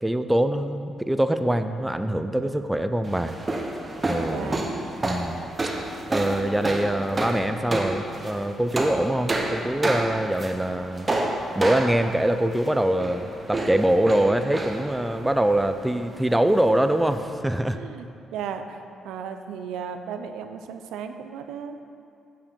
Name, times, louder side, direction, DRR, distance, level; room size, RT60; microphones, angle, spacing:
voice 1, 0.0-3.3 4.0-4.6 5.0-5.4 6.1-11.1 11.5-17.8, right 1 dB, 10° right, 9 dB, 0.4 m, -24 dB
sound 1, 3.0-17.3, right 2 dB, 25° right, 0.9 m, -30 dB
voice 2, 4.3-4.6 17.7-18.8 19.0-21.8, right 7 dB, 85° right, 7 dB, 0.4 m, -35 dB
8.3 x 5.0 x 5.2 m, 2.5 s
cardioid pair, 90°, 0 cm